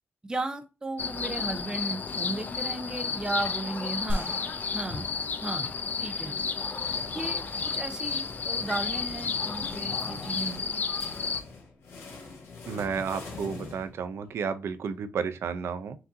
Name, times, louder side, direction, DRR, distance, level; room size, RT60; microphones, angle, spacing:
voice 1, 0.2-4.3 4.7-5.1 5.4-5.7 6.0-6.4 7.1-10.9, right 2 dB, 20° right, 0.6 m, -35 dB
sound 1, 1.0-11.4, left 5 dB, 45° left, 0.5 m, -32 dB
sound 2, 4.1-6.4, equal, 55° right, 1.0 m, -36 dB
sound 3, 6.4-14.4, left 3 dB, 80° left, 1.7 m, -44 dB
voice 2, 12.7-16.0, right 6 dB, 75° right, 0.5 m, -32 dB
5.9 x 2.7 x 2.6 m
cardioid pair, 100°, 4 cm